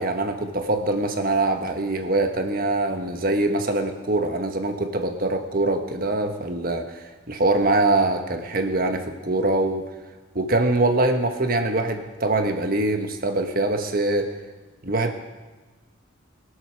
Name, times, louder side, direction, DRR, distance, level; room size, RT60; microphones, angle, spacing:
voice 1, 0.0-9.9 10.3-14.3 14.8-15.1, right 2 dB, 45° right, 6 dB, 1.4 m, -23 dB
22.0 x 8.0 x 6.4 m, 1.3 s
head